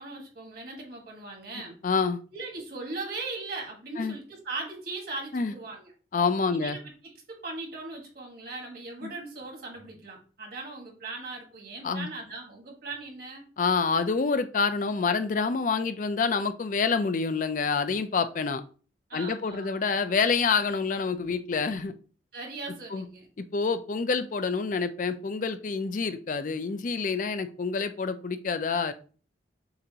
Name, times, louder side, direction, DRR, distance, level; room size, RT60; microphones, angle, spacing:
voice 1, 0.0-1.8 2.3-5.9 6.5-13.4 19.1-19.9 22.3-23.3, right 3 dB, 55° right, 1 dB, 1.6 m, -39 dB
voice 2, 1.8-2.2 4.0-4.2 5.3-5.5 6.1-6.8 9.0-9.1 11.8-12.1 13.6-18.6 19.1-22.0 22.9-23.1 23.5-28.9, left 5 dB, 45° left, 11 dB, 0.4 m, -27 dB
6.8 x 2.5 x 2.8 m, 0.39 s
head